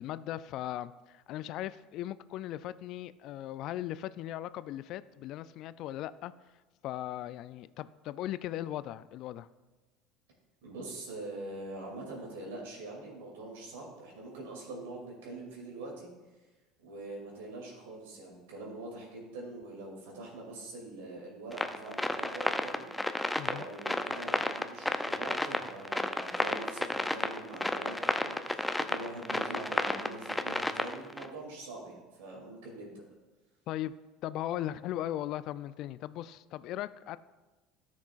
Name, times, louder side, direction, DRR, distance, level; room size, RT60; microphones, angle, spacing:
voice 1, 0.0-6.3 6.8-9.5 23.4-23.6 33.7-34.0 34.2-37.2, left 13 dB, 55° left, 16 dB, 0.3 m, -38 dB
voice 2, 10.6-16.1 16.8-33.0, right 2 dB, 75° right, -2 dB, 2.6 m, -44 dB
sound 1, 21.5-31.3, left 1 dB, 5° left, 0.5 m, -32 dB
13.5 x 6.0 x 2.4 m, 1.2 s
hypercardioid pair, 75°, 0 cm